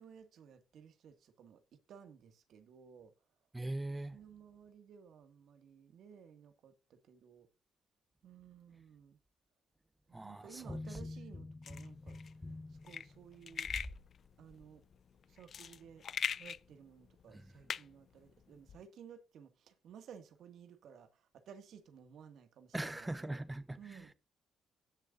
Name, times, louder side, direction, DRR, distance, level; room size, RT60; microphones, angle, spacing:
voice 1, 0.0-3.1 4.0-7.5 8.2-9.2 10.1-13.7 14.4-14.8 15.3-16.1 16.4-23.4 23.8-24.1, right 7 dB, 70° right, 1.9 m, -56 dB
voice 2, 3.5-4.2 10.1-11.0 17.3-17.5 22.7-24.1, right 1 dB, 15° right, 0.9 m, -41 dB
sound 1, 10.6-14.0 14.5-14.6, left 2 dB, 15° left, 1.3 m, -46 dB
sound 2, 11.6-18.8, left 7 dB, 55° left, 0.4 m, -43 dB
17.0 x 6.8 x 2.5 m
cardioid pair, 90°, 0 cm